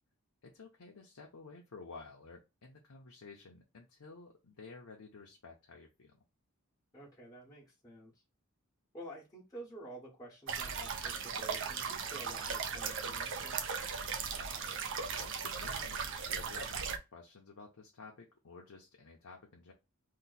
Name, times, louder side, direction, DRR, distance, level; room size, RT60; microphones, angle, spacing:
voice 1, 0.4-6.1 15.1-16.0 16.3-19.7, left 4 dB, 80° left, 0 dB, 0.6 m, -52 dB
voice 2, 6.9-8.1 8.9-13.6, right 1 dB, 15° left, -6 dB, 1.1 m, -50 dB
sound 1, 10.5-17.0, right 6 dB, 60° right, 0.5 m, -37 dB
2.9 x 2.1 x 4.0 m, 0.26 s
head